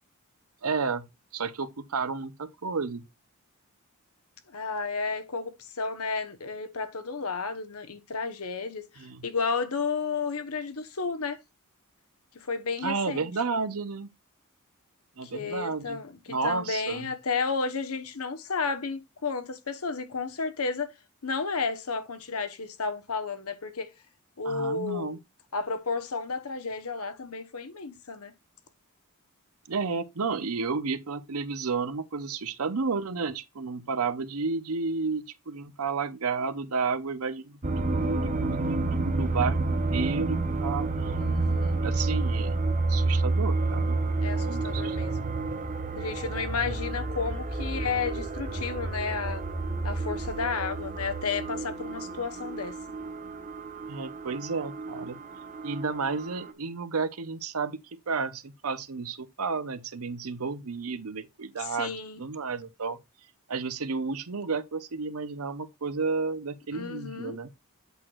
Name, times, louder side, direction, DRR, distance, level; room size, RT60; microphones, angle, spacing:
voice 1, 0.6-1.1 1.3-3.0 9.0-9.3 12.8-14.1 15.2-16.0 16.3-17.1 24.4-25.2 29.7-41.1 41.8-42.6 42.9-44.0 44.5-45.3 53.9-55.2 55.6-63.0 63.5-67.5, right 4 dB, 80° right, 0.8 m, -32 dB
voice 2, 4.5-11.4 12.3-13.3 15.2-16.2 16.4-20.9 21.2-23.9 24.4-25.2 25.5-28.3 41.2-41.8 44.2-45.2 46.0-49.4 49.8-52.7 61.6-62.2 66.7-67.4, left 4 dB, 85° left, 1.1 m, -32 dB
sound 1, 37.6-56.5, right 3 dB, 35° right, 0.8 m, -30 dB
8.2 x 6.3 x 2.4 m
head